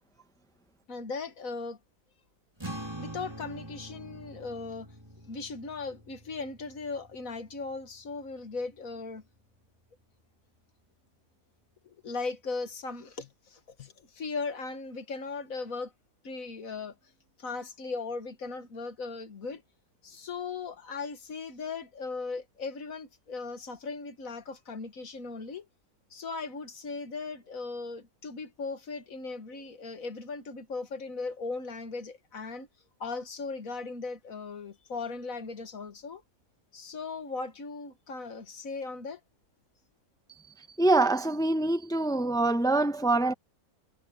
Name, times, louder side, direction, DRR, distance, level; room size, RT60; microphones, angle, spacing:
voice 1, 0.9-1.8 3.0-4.9 5.3-9.2 11.8-15.9 16.2-17.0 17.4-19.6 20.0-25.7 26.1-32.7 33.0-36.2 36.7-39.2, left 4 dB, 65° left, 2.1 m, -38 dB
sound 1, 2.6-9.2, right 1 dB, 15° right, 3.7 m, -45 dB
voice 2, 40.8-43.3, right 2 dB, 5° left, 0.8 m, -25 dB
omnidirectional pair, 1.5 m